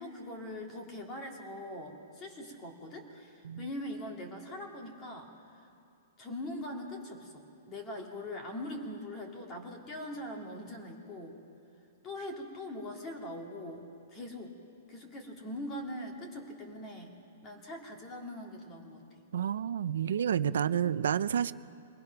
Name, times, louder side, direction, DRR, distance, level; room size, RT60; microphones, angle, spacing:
voice 1, 0.0-5.7 6.2-11.4 12.0-13.8 14.1-14.6 14.9-17.2 17.4-19.0 20.5-20.8, left 1 dB, 20° left, 1 dB, 2.3 m, -42 dB
voice 2, 19.3-21.5, right 9 dB, 80° right, 15 dB, 0.5 m, -30 dB
23.5 x 20.0 x 5.9 m, 2.6 s
hypercardioid pair, 170°, 0 cm